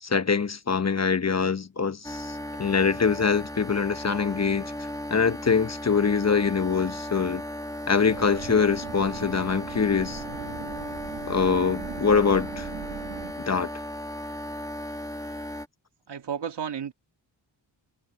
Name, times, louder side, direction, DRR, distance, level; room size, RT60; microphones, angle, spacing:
voice 1, 0.0-7.4 7.9-10.2 11.3-12.7 13.4-13.7, left 5 dB, 35° left, 1.1 m, -24 dB
sound 1, 2.0-15.7, left 1 dB, 10° left, 1.8 m, -36 dB
sound 2, 8.1-13.3, right 9 dB, 85° right, 2.4 m, -39 dB
voice 2, 16.1-16.9, right 8 dB, 65° right, 2.3 m, -33 dB
cardioid pair, 75°, 44 cm